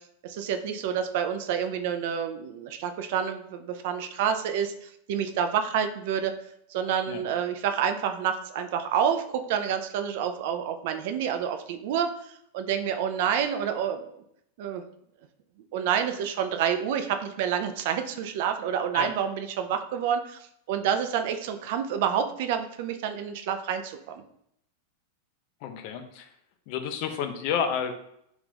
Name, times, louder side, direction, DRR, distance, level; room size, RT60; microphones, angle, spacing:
voice 1, 0.2-6.3 6.7-14.0 14.6-14.8 15.7-20.4 20.7-24.2, right 8 dB, 50° right, 7 dB, 0.3 m, -28 dB
voice 2, 25.6-26.3 26.7-27.9, left 7 dB, 45° left, 6 dB, 0.4 m, -30 dB
2.5 x 2.4 x 3.4 m, 0.74 s
figure-of-eight pair, 90°, 0 cm